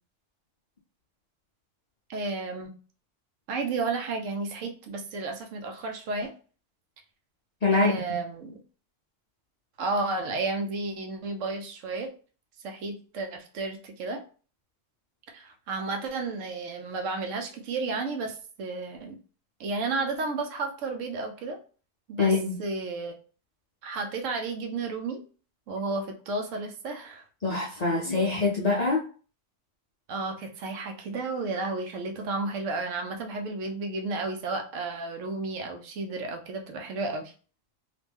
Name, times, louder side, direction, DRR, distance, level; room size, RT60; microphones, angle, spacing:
voice 1, 2.1-2.7 3.5-6.3 7.7-8.6 9.8-12.1 12.6-14.2 15.3-19.2 19.6-21.6 22.1-23.1 23.8-25.2 25.7-27.2 30.1-37.3, right 3 dB, 80° right, 4 dB, 1.0 m, -32 dB
voice 2, 7.6-8.2 22.2-22.6 27.4-29.0, left 3 dB, 50° left, -2 dB, 0.5 m, -24 dB
2.9 x 2.5 x 3.5 m, 0.39 s
omnidirectional pair, 1.3 m